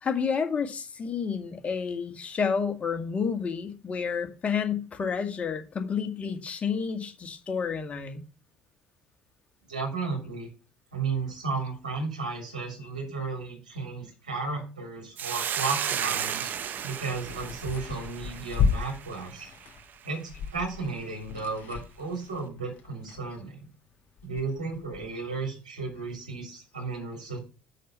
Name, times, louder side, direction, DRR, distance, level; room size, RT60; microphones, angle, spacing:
voice 1, 0.0-8.2, left 6 dB, 35° left, 2.0 m, -30 dB
voice 2, 9.7-10.5 10.9-16.5 16.8-19.5 20.0-23.7 24.2-27.4, right 4 dB, 90° right, 3.2 m, -34 dB
Hiss, 15.2-19.7, right 9 dB, 50° right, 0.7 m, -34 dB
sound 1, 16.8-23.7 24.1-25.1, left 5 dB, 55° left, 3.1 m, -34 dB
6.7 x 6.4 x 5.7 m
hypercardioid pair, 60°, 4 cm